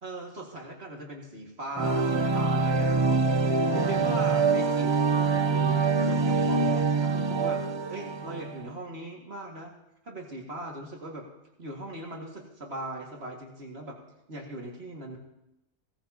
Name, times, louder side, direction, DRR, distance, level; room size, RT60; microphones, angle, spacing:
voice 1, 0.0-2.9 3.7-7.6 7.9-9.8 10.0-11.2 11.6-14.0 14.3-15.2, right 1 dB, 60° right, -1 dB, 2.3 m, -39 dB
sound 1, 1.7-8.6, right 4 dB, 30° right, 0.5 m, -25 dB
17.0 x 14.0 x 2.9 m, 0.87 s
omnidirectional pair, 1.2 m